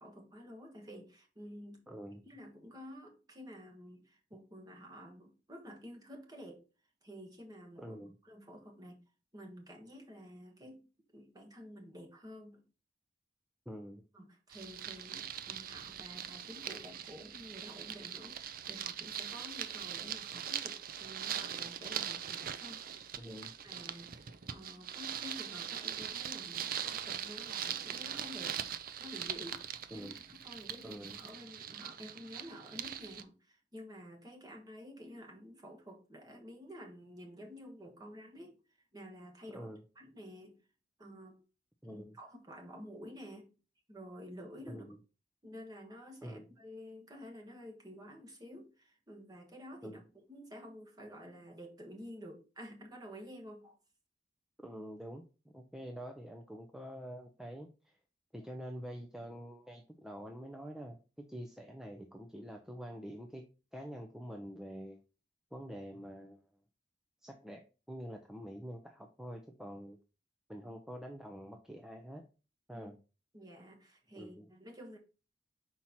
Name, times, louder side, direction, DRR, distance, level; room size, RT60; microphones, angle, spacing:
voice 1, 0.0-1.9 2.2-6.6 7.0-8.0 8.2-9.0 9.3-12.6 14.1-22.9 23.6-28.6 29.0-29.6 29.9-38.6 38.9-39.7 39.9-40.6 41.0-41.4 41.8-43.5 43.9-44.9 45.4-50.0 50.3-53.8 72.7-72.9 73.3-75.0, equal, 20° right, 1.4 m, -50 dB
voice 2, 1.9-2.2 7.8-8.1 13.7-14.0 23.2-23.5 29.9-30.2 30.8-31.2 39.5-39.8 41.8-42.2 44.7-45.0 46.2-46.5 49.8-50.0 54.6-58.0 58.3-63.4 63.7-65.0 65.5-66.5 67.2-67.6 67.9-70.0 70.5-72.2 72.7-73.0 74.2-74.5, equal, 5° right, 0.6 m, -46 dB
sound 1, 14.5-33.2, right 9 dB, 50° right, 0.5 m, -41 dB
5.8 x 4.5 x 4.1 m
head